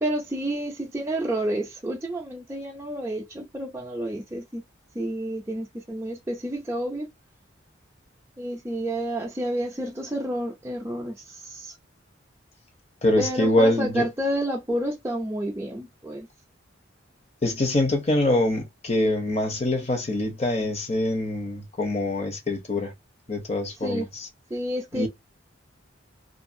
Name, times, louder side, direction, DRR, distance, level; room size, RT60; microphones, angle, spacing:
voice 1, 0.0-4.6 4.9-7.1 8.4-11.7 13.2-16.3 23.8-24.1 24.5-25.1, right 1 dB, 10° right, 0.4 m, -30 dB
voice 2, 13.0-14.0 17.4-22.9 23.3-24.0 24.9-25.1, left 1 dB, 35° left, 0.8 m, -24 dB
2.5 x 2.4 x 2.6 m
head